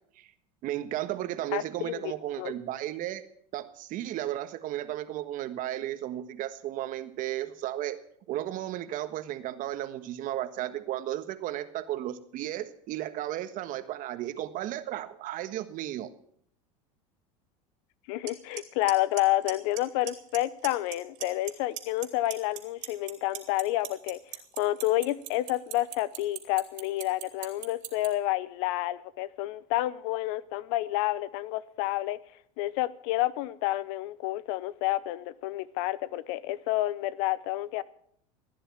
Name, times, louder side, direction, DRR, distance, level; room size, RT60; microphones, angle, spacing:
voice 1, 0.6-3.2 3.5-8.0 8.3-16.1, right 13 dB, 50° right, 1.5 m, -34 dB
voice 2, 1.5-2.1 2.4-2.5 18.1-24.2 24.6-32.2 32.6-37.8, left 16 dB, 70° left, 0.8 m, -29 dB
Clock, 18.3-18.4 18.6-18.9 19.2-19.8 20.1-20.4 20.6-21.5 21.8-28.1, right 19 dB, 70° right, 3.0 m, -36 dB
16.0 x 10.0 x 7.1 m
supercardioid pair, 100°, 17 cm